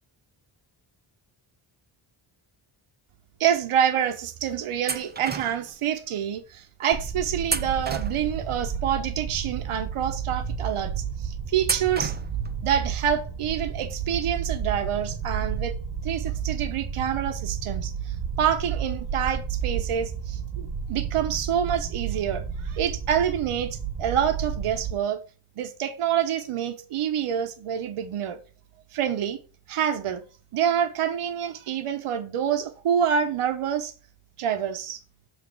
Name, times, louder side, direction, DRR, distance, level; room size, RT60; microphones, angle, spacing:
voice 1, 3.4-12.1 12.6-15.7 16.0-25.2 25.6-28.4 28.9-29.4 29.7-30.2 30.5-33.9 34.4-35.0, right 9 dB, 85° right, 1.0 m, -27 dB
sound 1, 4.9-5.8 7.4-8.6 11.6-12.5, right 5 dB, 20° right, 0.4 m, -32 dB
sound 2, 6.9-24.9, right 7 dB, 45° right, 1.0 m, -32 dB
7.5 x 3.5 x 5.9 m
wide cardioid pair, 155°, 50 cm